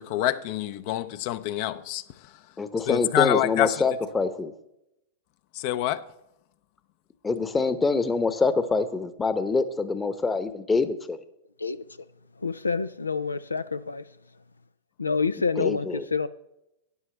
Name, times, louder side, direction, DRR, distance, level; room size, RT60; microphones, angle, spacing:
voice 1, 0.0-2.0 2.9-3.8 5.5-6.0, left 13 dB, 50° left, 0.6 m, -26 dB
voice 2, 2.6-4.5 7.2-11.2 15.6-16.1, left 4 dB, 15° left, 0.9 m, -25 dB
voice 3, 12.4-14.0 15.0-16.3, left 5 dB, 90° left, 0.4 m, -27 dB
12.5 x 9.8 x 3.3 m
hypercardioid pair, 100°, 0 cm